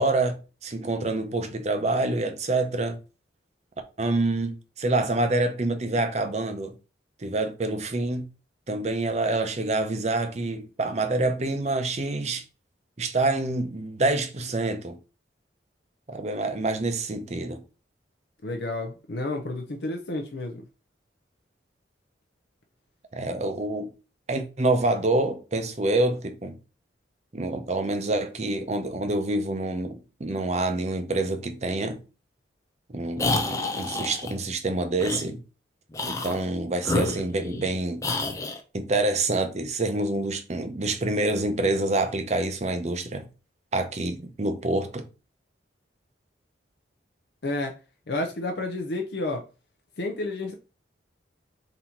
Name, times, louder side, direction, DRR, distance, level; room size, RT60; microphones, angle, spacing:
voice 1, 0.0-3.0 4.0-6.7 7.2-8.3 8.7-12.4 13.0-15.0 16.1-17.6 23.1-23.9 24.3-26.6 27.3-32.0 32.9-35.4 36.0-38.0 38.7-43.3 43.7-45.1, right 2 dB, 35° right, 0.6 m, -27 dB
voice 2, 18.4-20.6 47.4-47.8 48.1-49.4 50.0-50.5, left 2 dB, 60° left, 0.6 m, -30 dB
sound 1, 33.2-34.3 35.0-35.2 35.9-36.4 36.8-37.7 38.0-38.6, left 2 dB, 15° left, 0.5 m, -28 dB
4.0 x 2.7 x 4.3 m
head